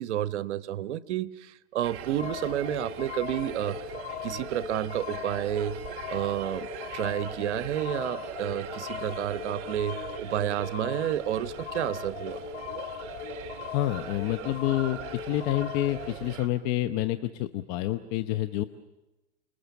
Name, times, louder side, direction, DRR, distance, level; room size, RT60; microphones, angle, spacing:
voice 1, 0.0-3.8 4.2-5.8 6.1-12.4, right 12 dB, 70° right, 15 dB, 1.1 m, -30 dB
sound 1, 1.8-16.5, right 10 dB, 40° right, 2.2 m, -42 dB
sound 2, 2.2-16.1, left 9 dB, 75° left, 1.6 m, -39 dB
voice 2, 13.7-15.0 15.3-18.6, left 13 dB, 40° left, 9 dB, 1.0 m, -28 dB
28.5 x 21.0 x 7.1 m, 1.0 s
hypercardioid pair, 125°, 36 cm